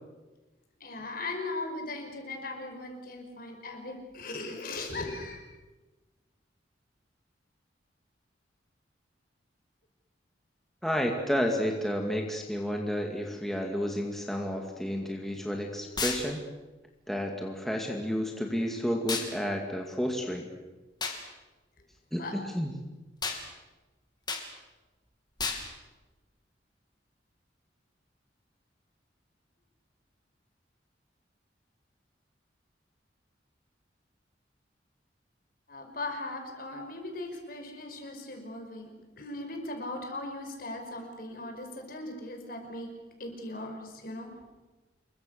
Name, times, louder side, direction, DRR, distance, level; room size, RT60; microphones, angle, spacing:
voice 1, 0.8-5.4 22.2-22.3 35.7-42.9 43.2-44.3, left 2 dB, 55° left, 3 dB, 5.5 m, -38 dB
voice 2, 10.8-16.4 17.1-20.5 22.1-22.7, equal, ahead, 1 dB, 2.2 m, -31 dB
sound 1, 16.0-16.3 19.1-19.3 21.0-21.2 23.2-23.4 24.3-24.5 25.4-25.7, left 4 dB, 25° left, 3.1 m, -31 dB
28.0 x 23.0 x 6.8 m, 1.2 s
head